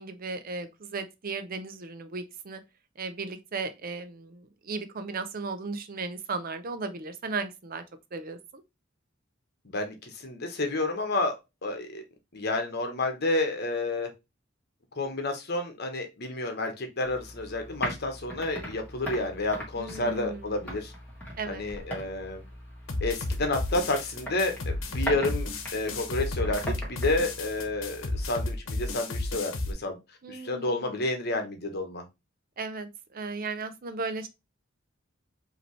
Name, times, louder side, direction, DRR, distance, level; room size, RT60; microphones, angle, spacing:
voice 1, 0.0-2.6 3.0-7.8 8.1-8.6 19.8-20.5 21.4-21.7 30.2-30.9 32.6-34.3, right 3 dB, 45° right, 0.6 m, -36 dB
voice 2, 9.6-11.4 11.6-12.0 12.3-14.1 14.9-20.9 21.5-22.4 23.0-25.5 25.7-30.0 30.3-32.0, left 2 dB, 55° left, 1.2 m, -30 dB
sound 1, 17.0-28.5, equal, 10° left, 1.7 m, -40 dB
sound 2, 22.9-29.7, left 2 dB, 80° left, 1.0 m, -32 dB
5.1 x 2.9 x 3.1 m
head